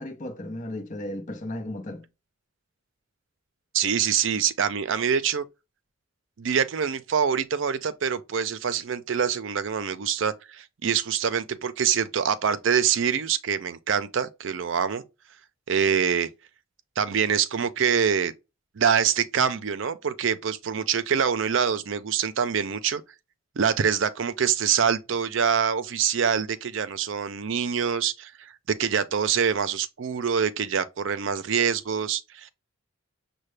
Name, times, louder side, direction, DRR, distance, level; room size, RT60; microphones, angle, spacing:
voice 1, 0.0-2.0, left 1 dB, 35° left, 0.8 m, -35 dB
voice 2, 3.7-5.5 6.4-15.0 15.7-16.3 17.0-18.3 18.8-23.0 23.6-32.5, right 7 dB, 70° right, 0.5 m, -25 dB
6.5 x 2.2 x 3.3 m
head